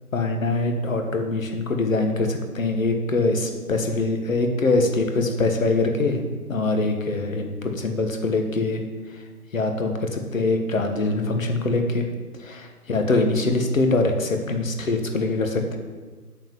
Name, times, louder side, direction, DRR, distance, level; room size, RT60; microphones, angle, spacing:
voice 1, 0.1-6.2 6.5-8.8 9.5-12.1 12.4-15.8, left 2 dB, 60° left, 5 dB, 1.5 m, -23 dB
7.0 x 5.8 x 7.3 m, 1.3 s
figure-of-eight pair, 145°, 46 cm